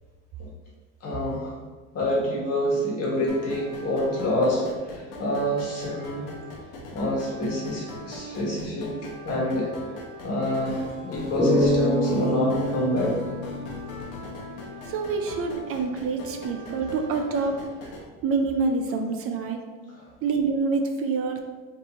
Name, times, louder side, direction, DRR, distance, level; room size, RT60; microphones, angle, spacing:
voice 1, 1.0-1.6 1.9-6.3 6.9-8.9 9.2-9.7 10.2-13.1 19.9-20.1, left 1 dB, 50° left, -3 dB, 1.5 m, -27 dB
sound 1, 3.3-18.0, equal, 80° left, 0.9 m, -40 dB
sound 2, 11.4-14.8, left 1 dB, 10° left, 0.8 m, -26 dB
voice 2, 14.9-17.9 18.2-19.6 20.2-21.4, right 4 dB, 45° right, 4 dB, 0.5 m, -27 dB
3.3 x 2.8 x 4.0 m, 1.3 s
supercardioid pair, 105°, 31 cm